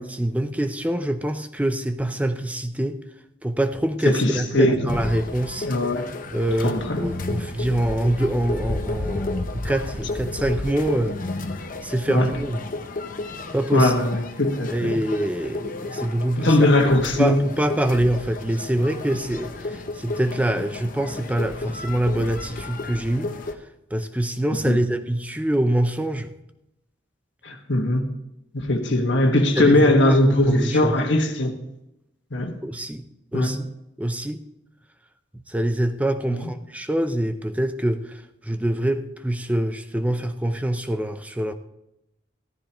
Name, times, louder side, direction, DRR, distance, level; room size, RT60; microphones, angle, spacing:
voice 1, 0.0-3.0 3.4-5.7 6.3-11.2 11.8-12.6 13.5-13.9 14.7-16.6 17.2-23.3 23.9-26.3 29.6-30.9 32.6-33.0 33.3-33.7 34.0-34.4 35.5-38.1 38.4-41.5, right 1 dB, 5° right, 8 dB, 0.6 m, -25 dB
voice 2, 4.0-4.9 5.6-6.1 6.6-7.0 12.1-12.3 13.7-15.0 16.4-17.4 24.6-24.8 27.4-28.0 28.5-31.5 32.3-32.6 33.3-33.5 36.3-36.5, left 1 dB, 65° left, 3 dB, 1.6 m, -20 dB
sound 1, 4.9-23.5, left 2 dB, 45° left, 0.8 m, -32 dB
15.0 x 13.5 x 3.0 m, 0.86 s
head